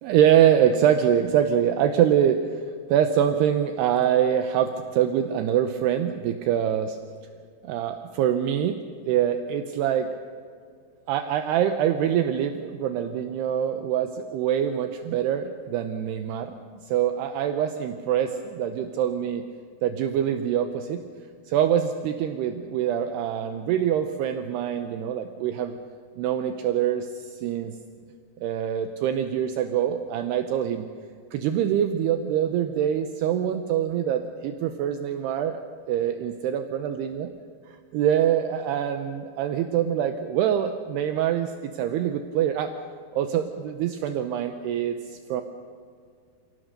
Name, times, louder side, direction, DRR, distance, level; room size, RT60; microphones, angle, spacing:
voice 1, 0.0-2.6 2.9-7.0 7.6-8.8 9.1-10.1 11.1-16.5 16.9-19.4 19.8-21.0 21.5-25.8 26.2-27.7 28.4-30.9 31.3-35.6 35.9-37.3 37.9-42.7 43.1-45.4, right 9 dB, 75° right, 7 dB, 2.8 m, -24 dB
29.0 x 16.5 x 6.7 m, 2.2 s
omnidirectional pair, 5.0 m